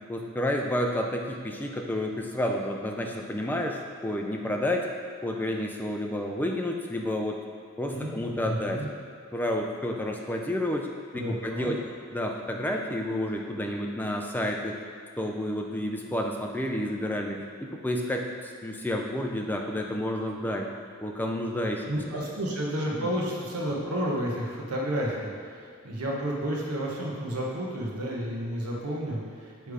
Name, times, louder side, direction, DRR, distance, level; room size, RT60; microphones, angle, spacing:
voice 1, 0.1-4.9 5.2-7.4 7.8-8.8 9.3-10.9 11.1-11.8 12.1-14.7 15.2-20.7 21.0-21.8 22.9-23.1, left 1 dB, 10° left, 1 dB, 0.4 m, -30 dB
voice 2, 7.9-8.9 11.1-11.7 21.9-29.7, equal, 80° right, -3 dB, 1.1 m, -31 dB
6.7 x 3.3 x 4.9 m, 2.3 s
head